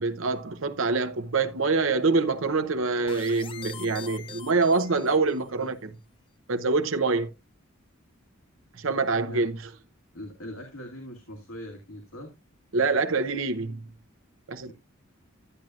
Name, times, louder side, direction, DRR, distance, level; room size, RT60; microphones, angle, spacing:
voice 1, 0.0-5.9 6.5-7.3 8.8-9.6 12.7-13.8 14.5-14.7, right 3 dB, 70° right, 0.8 m, -25 dB
sound 1, 3.1-5.5, left 7 dB, 25° left, 0.4 m, -43 dB
voice 2, 10.1-12.3 14.7-14.8, left 1 dB, 80° left, 2.2 m, -41 dB
12.0 x 9.1 x 2.4 m
head